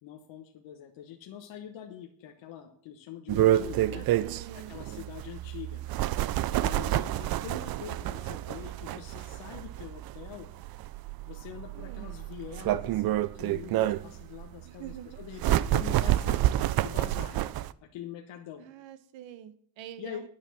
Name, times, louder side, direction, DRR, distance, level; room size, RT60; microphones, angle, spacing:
voice 1, 0.0-4.1 4.5-5.8 6.5-10.5 11.3-16.4 16.8-17.4 17.8-18.6 20.0-20.2, left 9 dB, 80° left, 3 dB, 1.4 m, -44 dB
sound 1, 3.3-17.7, right 14 dB, 55° right, 0.5 m, -29 dB
voice 2, 3.3-5.1 11.7-12.1 14.6-15.2 18.6-20.3, right 11 dB, 80° right, 13 dB, 1.2 m, -47 dB
10.0 x 9.9 x 6.2 m, 0.62 s
cardioid pair, 170°, 45 cm